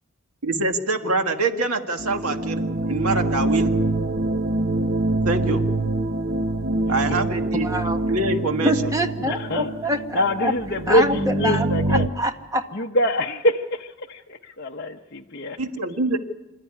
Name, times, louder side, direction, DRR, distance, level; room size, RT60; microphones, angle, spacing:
voice 1, 0.4-3.7 5.2-5.6 6.9-7.7 8.1-8.7 15.6-16.2, right 2 dB, 85° right, 5 dB, 1.8 m, -24 dB
sound 1, 2.0-12.1, right 2 dB, 45° right, 0.8 m, -25 dB
voice 2, 7.6-8.0 8.6-10.5 10.9-12.6, equal, 15° right, 4 dB, 1.5 m, -25 dB
voice 3, 9.2-9.7 10.1-12.1 12.7-15.6, left 1 dB, 45° left, 0 dB, 0.8 m, -24 dB
27.0 x 13.0 x 9.8 m, 1.0 s
head